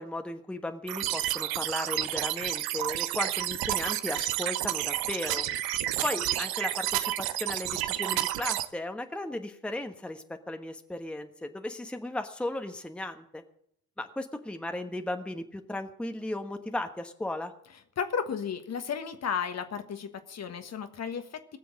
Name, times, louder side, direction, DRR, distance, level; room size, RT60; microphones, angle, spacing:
voice 1, 0.0-5.5 6.0-13.4 14.0-17.5, left 1 dB, ahead, 6 dB, 1.2 m, -36 dB
sound 1, 0.9-8.7, right 14 dB, 55° right, 1.0 m, -30 dB
voice 2, 18.0-21.6, left 7 dB, 35° left, 8 dB, 1.5 m, -34 dB
19.5 x 7.7 x 7.5 m, 0.71 s
figure-of-eight pair, 55°, 43 cm